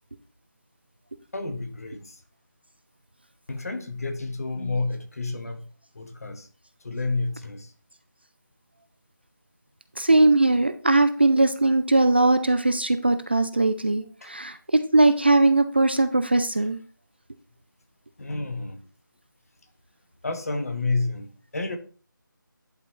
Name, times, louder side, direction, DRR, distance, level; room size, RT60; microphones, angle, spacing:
voice 1, 1.3-2.2 3.5-5.7 5.9-6.5 6.8-7.7 14.2-14.3 18.2-18.9 20.2-21.8, left 3 dB, 45° left, 1.1 m, -30 dB
voice 2, 10.0-16.8, right 2 dB, 30° right, 0.4 m, -20 dB
11.0 x 4.1 x 3.1 m
figure-of-eight pair, 160°, 11 cm